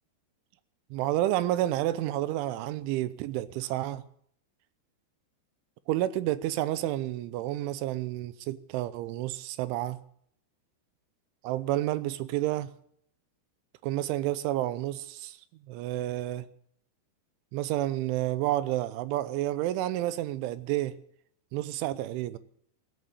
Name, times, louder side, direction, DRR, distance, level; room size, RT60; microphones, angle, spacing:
voice 1, 0.9-4.0 5.9-10.0 11.4-12.8 13.8-15.4 15.7-16.5 17.5-21.0 21.5-22.4, right 14 dB, 85° right, 3.2 m, -30 dB
17.0 x 9.0 x 8.4 m
omnidirectional pair, 5.4 m